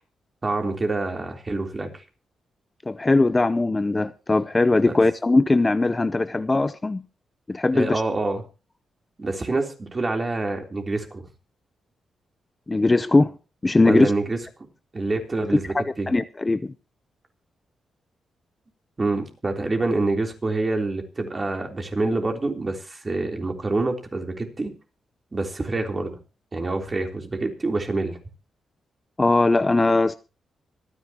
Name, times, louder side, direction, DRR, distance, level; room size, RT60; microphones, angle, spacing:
voice 1, 0.4-2.0 7.7-8.4 9.2-11.2 13.8-14.4 14.9-16.1 19.0-24.7 25.3-26.2 26.5-28.2, right 2 dB, 30° right, 3.6 m, -26 dB
voice 2, 2.9-7.0 7.5-8.0 12.7-13.3 13.6-14.1 15.7-16.7 29.2-30.1, left 2 dB, 20° left, 0.6 m, -20 dB
25.5 x 10.0 x 3.0 m
cardioid pair, 95°, 0 cm